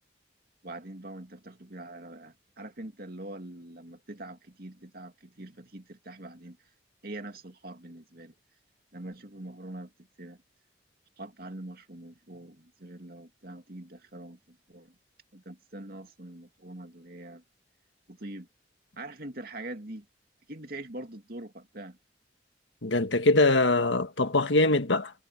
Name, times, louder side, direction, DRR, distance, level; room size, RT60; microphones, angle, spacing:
voice 1, 0.6-6.6 7.0-8.3 8.9-9.9 10.2-10.4 11.2-14.9 15.3-17.4 18.1-18.5 19.0-20.1 20.5-22.0, right 1 dB, 55° right, 2.5 m, -43 dB
voice 2, 22.8-25.1, left 2 dB, 85° left, 1.6 m, -23 dB
head